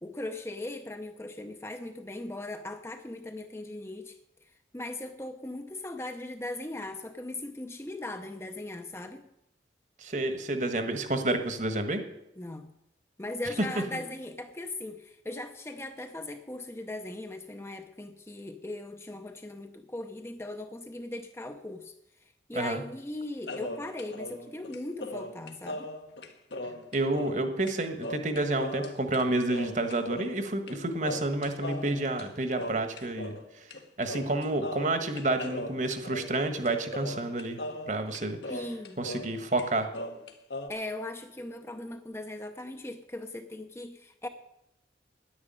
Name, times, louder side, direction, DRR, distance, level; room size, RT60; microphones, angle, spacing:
voice 1, 0.0-4.2 4.7-9.2 12.4-12.8 13.2-21.9 22.5-25.9 38.5-39.0 40.7-44.3, left 2 dB, 15° left, 7 dB, 0.7 m, -39 dB
voice 2, 10.0-12.0 13.6-13.7 22.5-22.8 26.9-33.4 34.0-37.6 37.9-38.4 39.0-39.9, right 2 dB, 45° right, 8 dB, 1.4 m, -29 dB
sound 1, 23.5-27.4 27.7-27.8 28.0-29.2 29.5-30.8 31.0-33.4 33.7-33.8 34.1-39.3 39.6-40.7, left 2 dB, 75° left, 1.5 m, -38 dB
10.0 x 9.8 x 8.9 m, 0.84 s
head